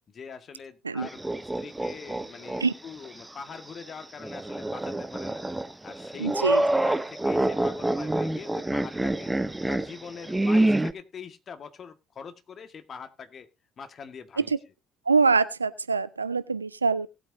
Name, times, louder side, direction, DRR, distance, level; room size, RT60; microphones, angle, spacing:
voice 1, 0.1-5.4 5.8-9.3 9.7-13.5 13.8-14.6, left 6 dB, 40° left, 1.8 m, -43 dB
sound 1, 1.0-2.6 3.0-3.1 4.2-10.9, right 1 dB, 10° right, 0.9 m, -27 dB
voice 2, 6.2-6.6 15.1-17.1, right 4 dB, 85° right, 0.5 m, -24 dB
18.5 x 8.5 x 2.7 m
figure-of-eight pair, 50°, 0 cm